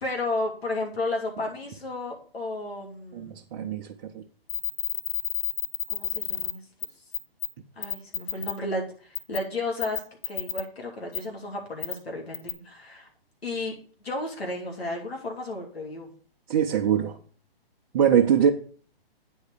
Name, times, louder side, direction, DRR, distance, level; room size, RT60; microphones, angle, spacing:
voice 1, 0.0-3.4 5.9-6.6 7.8-13.1 13.4-13.8 14.0-16.1, left 2 dB, 80° left, 2.8 m, -33 dB
voice 2, 3.1-3.9 4.1-4.2 16.5-17.2 17.9-18.5, right 8 dB, 25° right, 0.6 m, -22 dB
sound 1, 4.5-6.5 6.8-6.9 7.1-7.5 7.8-8.5 9.2-9.4 9.8-10.6 11.1-11.2 11.8-11.9 12.3-12.5, left 12 dB, 30° left, 1.2 m, -29 dB
9.5 x 4.8 x 6.6 m
hypercardioid pair, 145°, 30 cm